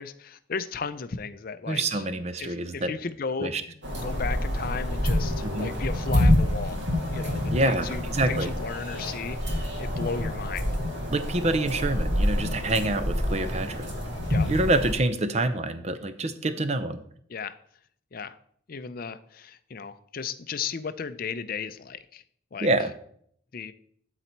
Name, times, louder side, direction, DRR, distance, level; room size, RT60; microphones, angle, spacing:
voice 1, 0.0-2.0 2.4-6.8 7.1-10.7 14.3-14.5 17.3-17.5 18.1-18.4 18.7-22.2 22.5-22.7 23.5-23.7, left 5 dB, 45° left, 12 dB, 0.5 m, -35 dB
voice 2, 1.7-2.9 3.4-3.6 5.4-5.7 7.5-8.5 11.1-13.9 14.5-17.0 22.6-22.9, right 2 dB, 35° right, 11 dB, 0.6 m, -26 dB
sound 1, 3.8-14.9, left 1 dB, 65° right, 2.1 m, -27 dB
12.0 x 4.1 x 4.5 m, 0.64 s
head